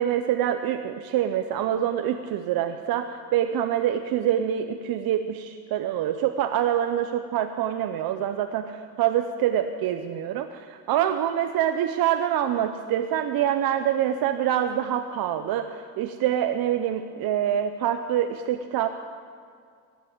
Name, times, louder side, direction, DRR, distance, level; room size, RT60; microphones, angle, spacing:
voice 1, 0.0-18.9, right 10 dB, 75° right, 7 dB, 0.7 m, -25 dB
14.5 x 7.5 x 8.5 m, 2.2 s
cardioid pair, 135°, 37 cm